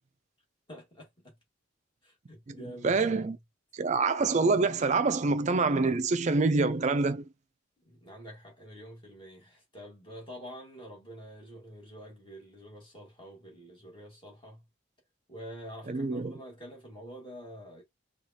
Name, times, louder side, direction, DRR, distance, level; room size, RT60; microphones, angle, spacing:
voice 1, 0.7-1.3 2.0-3.4 7.9-14.6 15.3-17.8, equal, 25° left, 1.7 m, -47 dB
voice 2, 2.8-3.4 3.7-7.3 15.9-16.3, right 3 dB, 35° right, 0.4 m, -26 dB
4.7 x 2.4 x 2.8 m
head